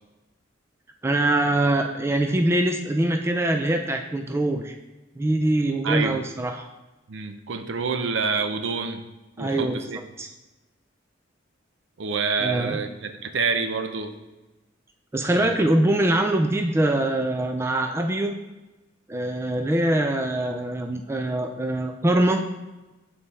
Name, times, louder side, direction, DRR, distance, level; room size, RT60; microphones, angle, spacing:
voice 1, 1.0-4.7 5.2-6.7 9.4-10.3 12.4-12.8 15.1-18.4 19.1-22.4, right 1 dB, 15° right, 4 dB, 0.3 m, -23 dB
voice 2, 5.8-6.2 7.1-9.0 9.4-10.0 12.0-14.1 15.3-15.5, right 5 dB, 65° right, 7 dB, 0.5 m, -27 dB
7.3 x 4.2 x 3.3 m, 1.1 s
head